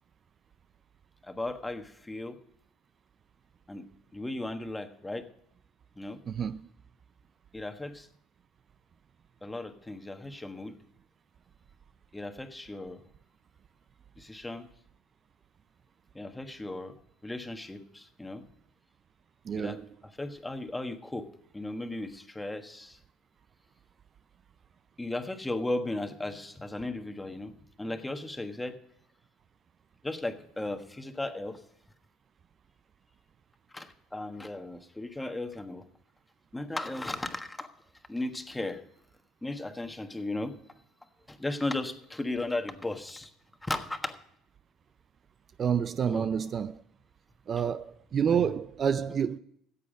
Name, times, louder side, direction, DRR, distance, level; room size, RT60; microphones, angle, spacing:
voice 1, 1.2-2.4 3.7-3.9 4.1-5.3 6.0-6.2 7.5-8.1 9.4-10.8 12.1-13.0 14.2-14.7 16.1-17.0 17.2-18.4 19.5-19.8 20.2-21.3 21.5-23.0 25.0-28.8 30.0-31.6 33.7-35.8 36.5-37.7 38.1-38.8 39.4-40.5 41.3-43.3 43.6-44.2 46.1-46.3 48.3-48.5, left 2 dB, 10° left, 1.4 m, -36 dB
voice 2, 6.3-6.6 19.5-19.9 45.6-46.8 47.5-49.4, right 7 dB, 40° right, 0.4 m, -28 dB
14.5 x 8.3 x 5.1 m
supercardioid pair, 95°, 0 cm